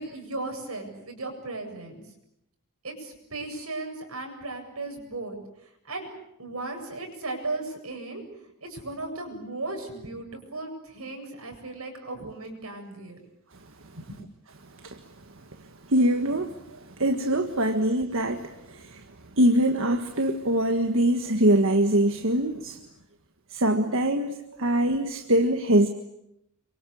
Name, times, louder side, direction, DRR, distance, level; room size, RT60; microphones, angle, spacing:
voice 1, 0.0-2.0 2.8-6.1 6.4-13.2 14.0-14.2 16.7-16.8 17.7-17.9 24.4-24.6, right 2 dB, 85° right, 4 dB, 8.0 m, -36 dB
voice 2, 15.9-16.6 17.0-19.0 19.4-22.8 23.5-25.9, right 1 dB, 65° right, 6 dB, 1.6 m, -23 dB
28.0 x 24.5 x 8.6 m, 0.80 s
head